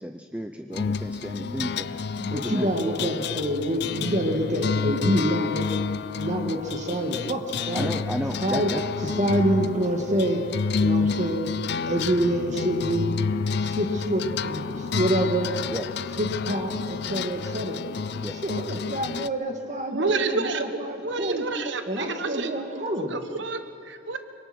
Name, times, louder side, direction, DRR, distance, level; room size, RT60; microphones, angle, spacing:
voice 1, 0.0-3.1 7.7-8.8 15.7-15.9 18.2-18.4, equal, 5° right, 6 dB, 0.7 m, -33 dB
sound 1, 0.7-19.3, left 5 dB, 60° left, 0.5 m, -29 dB
voice 2, 1.4-1.7 2.2-5.7 6.1-7.9 8.4-8.7 9.0-10.4 10.8-11.5 11.9-13.2 13.6-15.5 16.2-17.8 18.4-21.4 21.9-23.2, right 1 dB, 40° right, 3 dB, 1.9 m, -27 dB
voice 3, 19.9-22.5 23.1-24.2, right 3 dB, 70° right, 8 dB, 1.2 m, -29 dB
24.5 x 22.5 x 6.1 m, 2.5 s
head